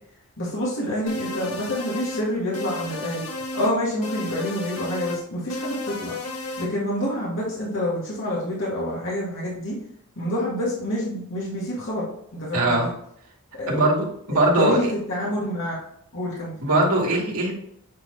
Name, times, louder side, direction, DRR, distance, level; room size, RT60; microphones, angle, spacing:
voice 1, 0.4-3.2 3.5-9.8 10.2-12.9 13.6-13.9 14.3-15.8 16.1-16.5, equal, 60° left, -6 dB, 2.1 m, -27 dB
sound 1, 1.1-2.3 2.5-3.7 4.0-5.2 5.5-6.7, left 2 dB, 90° left, 1.6 m, -33 dB
voice 2, 12.5-12.9 13.7-14.9 16.6-17.5, right 1 dB, 80° right, -3 dB, 2.3 m, -21 dB
8.8 x 3.9 x 3.5 m, 0.71 s
head